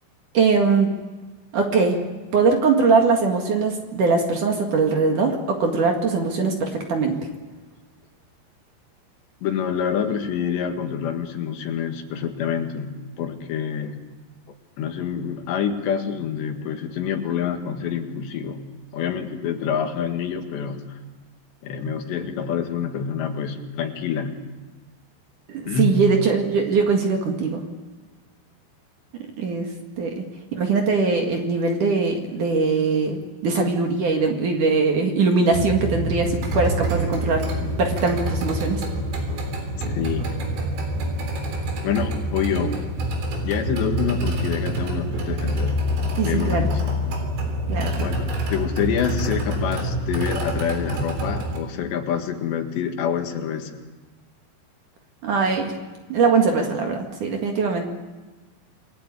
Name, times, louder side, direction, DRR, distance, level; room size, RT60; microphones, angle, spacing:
voice 1, 0.3-0.9 1.5-2.0 2.3-7.2 25.5-27.6 29.4-29.7 30.0-30.2 30.5-38.8 46.2-46.7 47.7-47.9 55.2-55.7 56.1-57.9, right 4 dB, 50° right, 3 dB, 3.1 m, -21 dB
voice 2, 9.4-12.9 13.2-14.0 14.8-18.6 18.9-20.8 21.6-24.4 25.7-26.1 39.8-40.3 41.8-42.8 43.4-45.9 46.2-47.1 48.0-53.7, left 7 dB, 75° left, 5 dB, 4.0 m, -27 dB
sound 1, 35.5-51.6, equal, 75° right, 5.8 m, -26 dB
28.5 x 20.0 x 8.4 m, 1.3 s
omnidirectional pair, 5.2 m